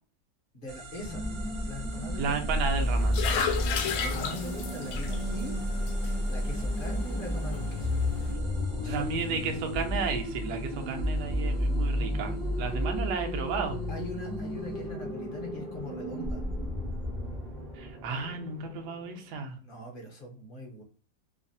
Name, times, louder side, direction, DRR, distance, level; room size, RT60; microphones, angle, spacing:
voice 1, 0.5-1.3 1.7-2.4 4.0-5.5 6.3-8.0 8.3-9.3 12.7-12.8 13.9-16.4 19.6-20.8, left 1 dB, 45° left, 0 dB, 0.7 m, -42 dB
sound 1, 0.7-14.9, right 2 dB, 55° right, 0.6 m, -49 dB
sound 2, 1.0-19.2, left 1 dB, ahead, 0.4 m, -32 dB
voice 2, 2.2-3.4 8.9-13.8 17.8-19.6, right 5 dB, 75° right, 4 dB, 1.1 m, -33 dB
sound 3, 2.7-8.3, left 7 dB, 70° left, 0.9 m, -35 dB
3.1 x 2.0 x 2.5 m, 0.40 s
omnidirectional pair, 1.9 m